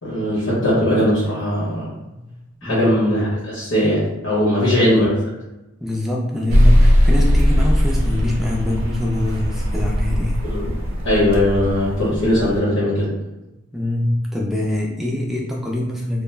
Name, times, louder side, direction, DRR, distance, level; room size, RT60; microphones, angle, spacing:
voice 1, 0.0-2.0 2.6-5.1 10.5-10.7 11.0-13.1, left 1 dB, 70° left, -8 dB, 0.9 m, -19 dB
voice 2, 5.8-10.4 13.7-16.2, left 1 dB, ahead, -3 dB, 0.3 m, -24 dB
sound 1, 6.5-12.6, equal, 70° right, 0.5 m, -18 dB
2.2 x 2.1 x 3.1 m, 0.99 s
head